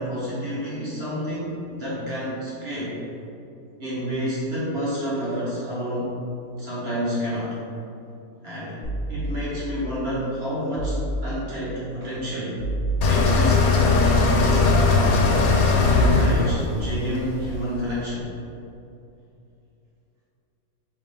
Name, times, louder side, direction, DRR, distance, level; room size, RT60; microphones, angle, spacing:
voice 1, 0.0-2.9 3.8-6.2 6.6-7.6 8.4-8.8 9.1-12.6 13.1-15.3 15.8-18.3, equal, 45° right, -9 dB, 1.5 m, -29 dB
sound 1, 8.8-9.8 10.8-11.7 12.6-13.7 14.4-15.5, right 1 dB, 45° left, 0.4 m, -29 dB
sound 2, 13.0-18.0, left 4 dB, 75° left, 1.0 m, -19 dB
4.6 x 3.2 x 3.5 m, 2.7 s
omnidirectional pair, 1.6 m